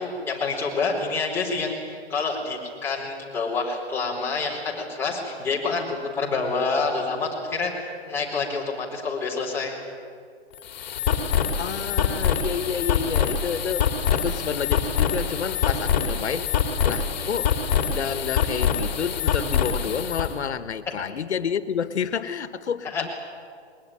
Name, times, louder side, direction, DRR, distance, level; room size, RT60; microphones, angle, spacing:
voice 1, 0.0-9.7 15.7-15.8 22.9-23.0, left 4 dB, 5° left, -4 dB, 4.2 m, -27 dB
sound 1, 10.5-20.3, left 7 dB, 40° left, 3.2 m, -25 dB
voice 2, 11.6-13.9 14.1-16.5 16.8-17.5 17.9-23.1, left 7 dB, 85° left, 13 dB, 1.6 m, -29 dB
22.0 x 20.0 x 10.0 m, 2.2 s
hypercardioid pair, 165°, 33 cm